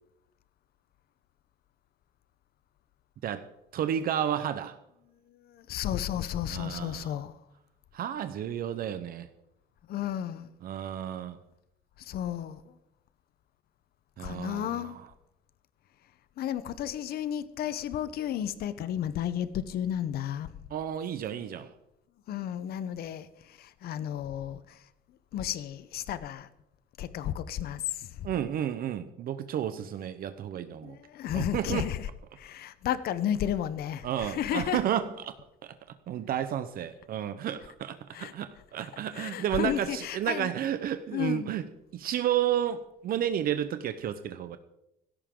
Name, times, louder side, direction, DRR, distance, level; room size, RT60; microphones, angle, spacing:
voice 1, 3.7-4.7 6.5-7.2 7.9-9.3 10.6-11.4 14.2-15.1 20.7-21.7 28.2-31.0 31.3-31.9 34.0-35.3 35.6-35.7 36.1-41.7 41.9-44.6, right 10 dB, 60° right, 10 dB, 0.9 m, -31 dB
voice 2, 5.5-7.3 9.9-10.5 12.0-12.6 14.2-15.0 16.4-20.5 22.3-24.8 25.3-26.5 27.0-28.3 30.8-32.1 32.4-34.8 38.1-38.3 39.1-40.5 41.1-41.5, left 10 dB, 65° left, 15 dB, 0.9 m, -33 dB
16.5 x 13.5 x 3.8 m, 0.84 s
cardioid pair, 110°, 17 cm